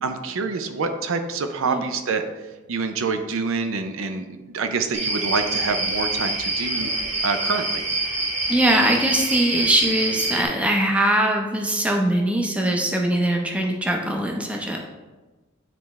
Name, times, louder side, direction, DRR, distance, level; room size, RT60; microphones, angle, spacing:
voice 1, 0.0-2.2 2.7-6.9 7.2-7.8, right 4 dB, 70° right, 7 dB, 0.5 m, -26 dB
sound 1, 4.9-10.4, right 2 dB, 35° right, 1.2 m, -26 dB
voice 2, 8.5-14.8, right 1 dB, 5° right, 1 dB, 0.6 m, -21 dB
9.0 x 3.4 x 3.2 m, 1.2 s
head